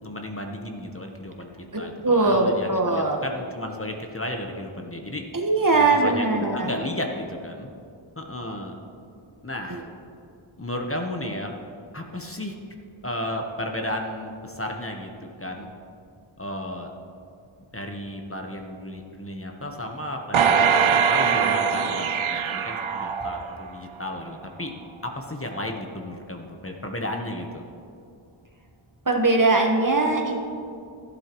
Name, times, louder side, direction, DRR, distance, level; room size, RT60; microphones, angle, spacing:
voice 1, 0.0-5.3 5.7-7.9 8.2-8.8 9.4-9.8 10.6-11.5 11.9-12.5 13.0-15.7 16.4-16.9 17.7-24.7 25.0-27.6, left 1 dB, 25° left, 2 dB, 1.0 m, -33 dB
voice 2, 1.7-3.2 5.3-6.7 9.7-9.8 29.1-30.4, right 3 dB, 40° right, 2 dB, 1.2 m, -21 dB
sound 1, 20.3-23.8 24.3-24.4, right 6 dB, 75° right, 0.6 m, -22 dB
13.5 x 11.5 x 3.0 m, 2.5 s
wide cardioid pair, 50°, 48 cm